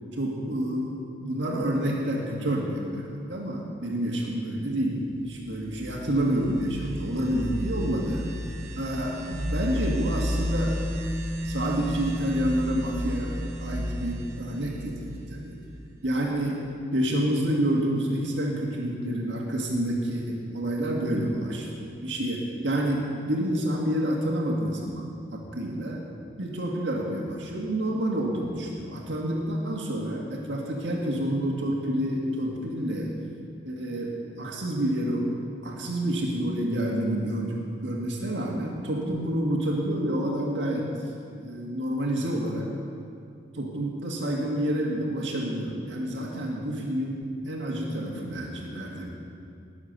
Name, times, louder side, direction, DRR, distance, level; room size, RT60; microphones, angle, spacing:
voice 1, 0.1-8.2 8.8-10.8 11.4-15.6 16.0-16.6 16.9-26.0 26.4-33.1 33.6-35.3 35.6-41.1 41.4-42.7 43.5-49.1, right 1 dB, 85° right, -2 dB, 1.9 m, -28 dB
sound 1, 5.4-16.0, equal, 40° right, 1.2 m, -32 dB
19.5 x 7.2 x 6.7 m, 2.4 s
head